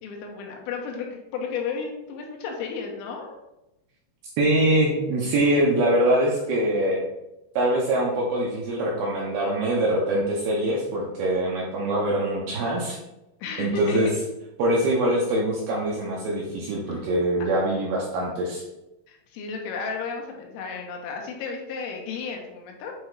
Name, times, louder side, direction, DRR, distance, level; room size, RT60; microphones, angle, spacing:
voice 1, 0.0-3.4 6.1-6.2 13.4-14.1 16.9-17.0 19.1-23.0, left 5 dB, 85° left, 1 dB, 3.4 m, -33 dB
voice 2, 4.4-7.0 7.6-13.0 13.6-14.1 14.6-18.6, right 1 dB, 75° right, -3 dB, 2.3 m, -23 dB
8.4 x 2.9 x 4.5 m, 0.92 s
omnidirectional pair, 5.3 m